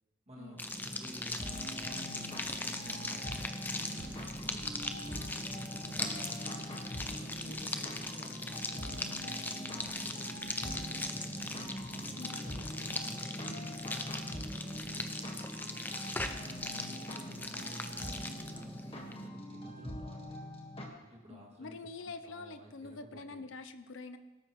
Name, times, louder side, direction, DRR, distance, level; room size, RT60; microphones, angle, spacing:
voice 1, 0.3-6.4 7.0-11.5 11.9-15.5 16.2-20.4 21.0-21.8 22.0-23.4, equal, 30° right, -2 dB, 2.3 m, -53 dB
sound 1, 0.6-19.3, left 2 dB, 10° left, 0.6 m, -40 dB
sound 2, 1.4-20.9, equal, 30° left, 1.6 m, -44 dB
sound 3, 3.7-6.4, right 3 dB, 70° right, 0.6 m, -55 dB
voice 2, 7.1-7.6 12.2-12.6 21.3-24.2, left 3 dB, 70° left, 10 dB, 0.7 m, -46 dB
18.0 x 13.0 x 3.2 m, 1.2 s
head